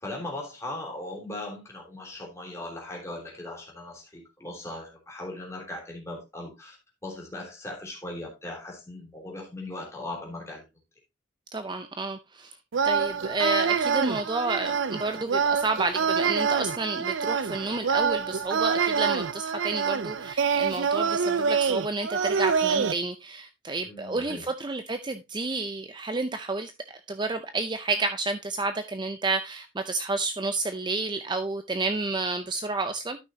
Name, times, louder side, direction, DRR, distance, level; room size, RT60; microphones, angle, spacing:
voice 1, 0.0-6.8 7.0-10.7 23.8-24.4, left 2 dB, 15° left, 3.2 m, -38 dB
voice 2, 11.5-12.6 12.8-26.7 27.1-33.2, right 3 dB, 25° right, 0.5 m, -30 dB
sound 1, 12.7-22.9, right 6 dB, 85° right, 0.6 m, -26 dB
12.5 x 6.0 x 2.8 m
head